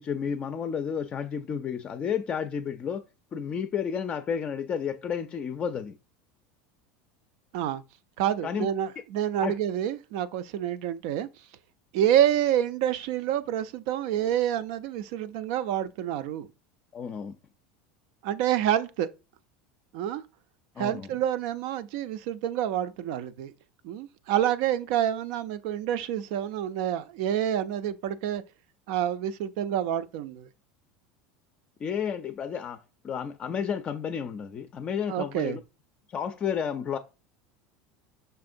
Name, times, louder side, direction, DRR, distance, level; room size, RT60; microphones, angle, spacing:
voice 1, 0.0-3.0 3.3-6.0 8.4-8.7 9.4-9.5 16.9-17.3 20.8-21.2 31.8-35.6 36.1-37.0, left 7 dB, 30° left, 0.4 m, -31 dB
voice 2, 8.2-11.3 11.9-16.5 18.2-19.1 19.9-20.2 20.8-23.5 23.8-28.4 28.9-30.5 35.1-35.6, right 11 dB, 70° right, 0.5 m, -28 dB
5.6 x 3.5 x 2.6 m
supercardioid pair, 125°, 4 cm